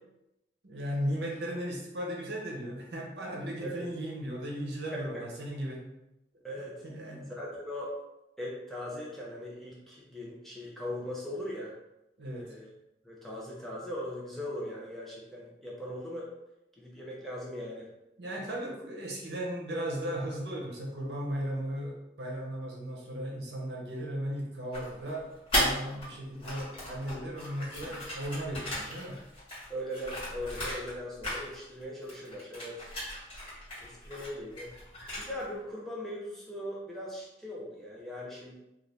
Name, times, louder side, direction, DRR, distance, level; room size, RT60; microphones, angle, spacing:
voice 1, 0.6-5.9 6.8-7.3 12.2-12.6 18.2-29.3, equal, 75° right, -2 dB, 0.8 m, -36 dB
voice 2, 4.9-5.2 6.4-6.8 7.3-8.0 8.4-11.7 12.4-12.7 13.0-16.3 16.8-17.9 29.7-32.9 33.8-34.7 35.2-38.6, equal, ahead, -5 dB, 0.5 m, -39 dB
sound 1, 24.7-26.1 26.3-31.0 31.2-35.5, equal, 30° left, 1.4 m, -36 dB
2.5 x 2.4 x 3.3 m, 0.90 s
head